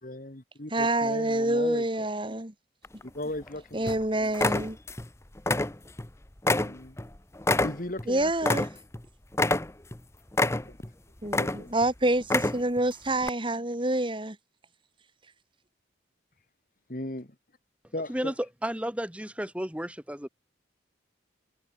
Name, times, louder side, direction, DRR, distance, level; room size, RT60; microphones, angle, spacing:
voice 1, 0.0-2.1 3.0-4.4 6.6-7.0 7.6-8.7 10.4-10.8 11.4-11.7 16.9-17.4 17.9-18.3, left 1 dB, 45° left, 1.9 m, -38 dB
voice 2, 0.7-2.5 3.7-4.8 8.1-8.7 11.2-14.4, right 1 dB, 25° right, 2.0 m, -27 dB
sound 1, 2.8-3.5 3.9-4.0 4.3-5.1 5.4-6.1 6.4-9.0 9.3-10.0 10.3-10.9 11.3-11.9 12.2-12.8 13.2-13.3, left 2 dB, 15° left, 0.8 m, -27 dB
voice 3, 18.6-20.3, equal, 5° right, 2.1 m, -32 dB
head